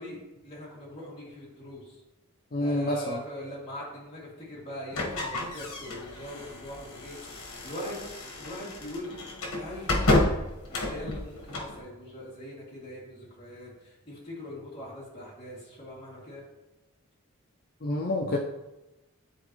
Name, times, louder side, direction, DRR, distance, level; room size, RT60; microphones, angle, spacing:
voice 1, 0.0-2.0 2.6-8.0 8.4-9.1 9.5-10.4 10.7-16.4, equal, 25° left, -7 dB, 2.3 m, -41 dB
voice 2, 2.5-3.2 17.8-18.4, left 1 dB, 40° left, 1 dB, 0.5 m, -28 dB
sound 1, 4.9-11.8, left 2 dB, 75° left, 1.3 m, -30 dB
10.0 x 4.0 x 3.0 m, 1.0 s
head